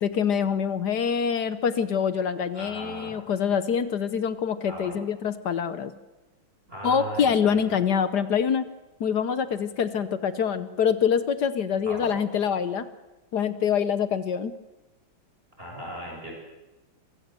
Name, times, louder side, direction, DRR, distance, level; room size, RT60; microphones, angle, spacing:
voice 1, 0.0-5.9 6.8-8.7 9.0-12.9 13.3-14.6, left 7 dB, 60° left, 13 dB, 1.4 m, -25 dB
voice 2, 2.5-3.2 4.7-5.0 6.7-7.6 11.9-12.2 15.6-16.3, right 1 dB, 25° right, -1 dB, 7.4 m, -38 dB
26.0 x 16.0 x 7.6 m, 1.1 s
omnidirectional pair, 2.3 m